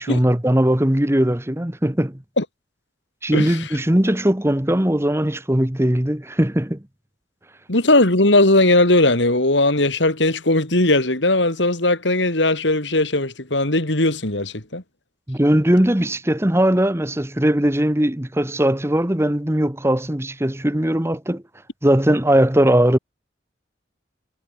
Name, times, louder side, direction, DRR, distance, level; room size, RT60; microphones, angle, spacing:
voice 1, 0.0-2.2 3.2-6.8 15.3-21.4 21.8-23.0, right 1 dB, 15° right, 1.2 m, -19 dB
voice 2, 3.3-3.8 7.7-14.8, left 2 dB, 75° left, 3.8 m, -18 dB
head